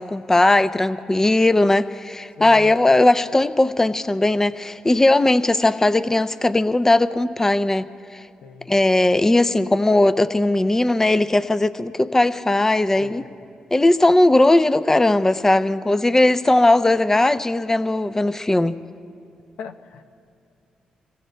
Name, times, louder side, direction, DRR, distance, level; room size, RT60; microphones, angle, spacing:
voice 1, 0.0-7.9 8.1-8.2 8.7-13.2 13.7-18.8, left 2 dB, 15° left, 12 dB, 0.5 m, -18 dB
voice 2, 2.4-2.7 8.4-8.7 13.0-13.3 19.6-20.1, left 5 dB, 80° left, 7 dB, 0.7 m, -37 dB
26.5 x 22.5 x 2.2 m, 2.5 s
supercardioid pair, 55°, 3 cm